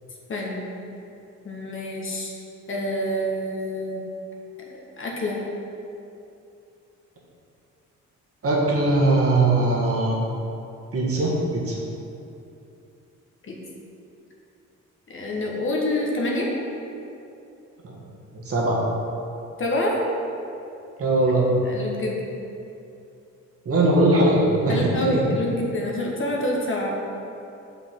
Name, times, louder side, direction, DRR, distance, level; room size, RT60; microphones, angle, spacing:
voice 1, 0.3-0.7 1.4-2.4 2.7-4.0 5.0-5.4 13.5-13.6 15.1-16.5 19.6-20.0 21.6-22.2 24.7-27.0, left 1 dB, 40° left, -2 dB, 1.3 m, -27 dB
voice 2, 8.4-10.2 10.9-11.8 17.8-18.0 18.3-18.8 21.0-21.4 23.7-25.2, right 2 dB, 50° right, -4 dB, 1.6 m, -20 dB
5.8 x 5.3 x 4.5 m, 2.7 s
cardioid pair, 90°, 30 cm